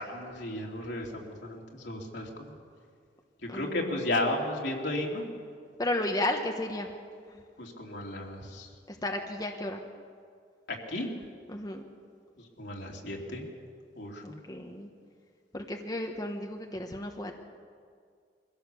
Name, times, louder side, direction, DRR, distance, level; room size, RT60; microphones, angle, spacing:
voice 1, 0.0-2.5 3.4-5.3 7.6-8.7 10.7-11.1 12.4-13.4 13.9-14.4, left 1 dB, 75° left, -1 dB, 3.1 m, -34 dB
voice 2, 3.5-4.0 5.8-6.9 7.3-7.4 8.9-9.9 11.5-11.8 14.2-14.9 15.5-17.4, left 1 dB, 20° left, 3 dB, 1.1 m, -33 dB
23.5 x 16.0 x 6.9 m, 2.1 s
head